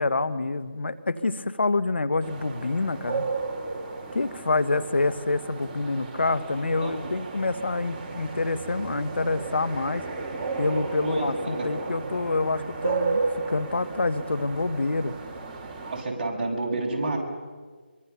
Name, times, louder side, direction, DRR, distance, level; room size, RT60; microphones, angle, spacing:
voice 1, 0.0-3.3 4.1-10.0 10.6-15.2, left 3 dB, 70° left, 13 dB, 1.3 m, -27 dB
sound 1, 2.2-16.0, right 4 dB, 25° right, 2.6 m, -34 dB
voice 2, 11.0-11.7 15.8-17.2, right 2 dB, 40° right, -1 dB, 6.7 m, -30 dB
24.0 x 24.0 x 7.0 m, 1.5 s
figure-of-eight pair, 160°, 6 cm